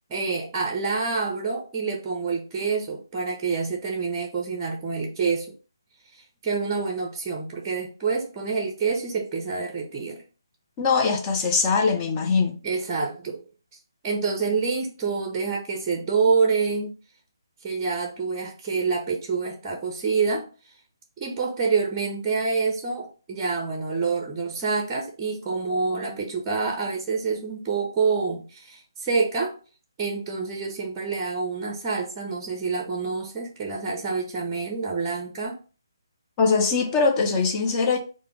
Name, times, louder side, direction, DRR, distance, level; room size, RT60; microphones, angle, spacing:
voice 1, 0.1-5.5 6.4-10.2 12.6-13.4 14.0-16.9 17.6-20.4 21.2-29.5 30.0-35.6, right 4 dB, 20° right, 0.6 m, -27 dB
voice 2, 10.8-12.6 36.4-38.0, left 4 dB, 20° left, 0.5 m, -22 dB
3.3 x 2.1 x 3.2 m
figure-of-eight pair, 145°, 2 cm